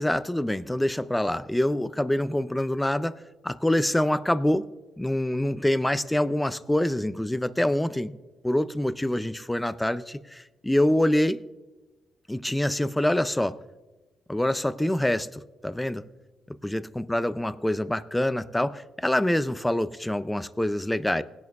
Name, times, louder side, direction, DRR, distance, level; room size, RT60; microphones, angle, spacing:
voice 1, 0.0-3.2 3.4-4.7 5.0-8.2 8.4-11.4 12.3-13.6 14.3-16.0 16.6-21.2, left 1 dB, 5° left, 14 dB, 0.4 m, -25 dB
19.5 x 10.5 x 2.4 m, 1.1 s
cardioid pair, 130°, 0 cm